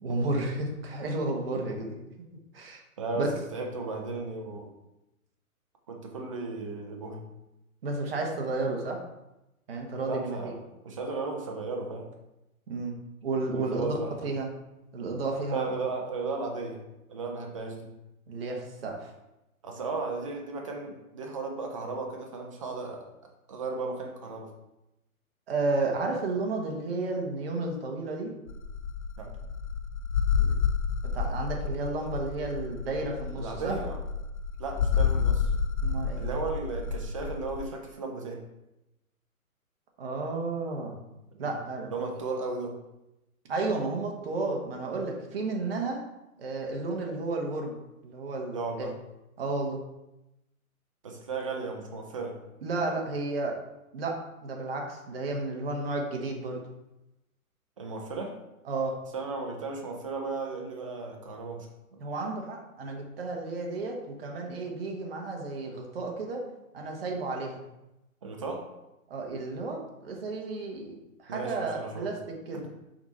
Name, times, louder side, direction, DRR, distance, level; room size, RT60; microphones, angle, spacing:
voice 1, 0.0-2.0 2.5-2.8 3.2-3.3 7.8-9.0 9.7-10.5 12.7-12.9 13.2-14.0 14.2-14.5 14.9-15.7 18.3-19.1 25.5-28.3 30.4-30.5 31.0-33.8 35.8-36.3 40.0-41.0 41.4-41.9 43.5-46.0 46.4-47.7 48.0-48.9 49.4-49.8 52.6-53.6 53.9-56.6 58.6-59.0 62.0-66.4 66.7-67.6 69.1-72.7, right 3 dB, 40° right, 1 dB, 1.4 m, -32 dB
voice 2, 3.0-4.7 5.9-7.2 10.1-10.6 10.8-12.1 13.5-14.3 15.5-16.8 17.1-17.9 19.6-23.0 23.5-24.5 29.2-29.3 33.4-34.0 34.6-35.5 36.2-38.4 41.4-41.5 41.9-42.8 48.5-48.9 51.0-52.4 57.8-58.4 59.1-62.0 68.2-68.7 71.3-72.1 72.5-72.7, right 3 dB, 25° right, 1 dB, 0.6 m, -35 dB
sound 1, 28.5-37.6, left 6 dB, 75° left, 0.7 m, -29 dB
5.9 x 4.1 x 4.2 m, 0.93 s
hypercardioid pair, 160°, 43 cm